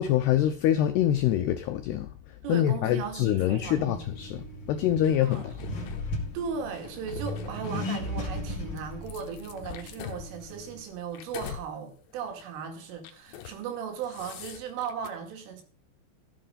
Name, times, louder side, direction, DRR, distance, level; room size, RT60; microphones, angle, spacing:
voice 1, 0.0-2.1 2.5-5.4, left 11 dB, 85° left, 2.3 m, -25 dB
voice 2, 2.4-4.0 5.2-5.5 6.3-15.6, right 7 dB, 75° right, 4.7 m, -37 dB
Accelerating revving vroom, 3.5-10.8, left 1 dB, 35° left, 1.9 m, -37 dB
sound 1, 5.0-6.0 6.6-8.2 8.8-11.7 12.1-12.3 13.0-13.6 13.9-15.1, left 10 dB, 70° left, 3.1 m, -44 dB
14.0 x 8.0 x 5.2 m
omnidirectional pair, 5.8 m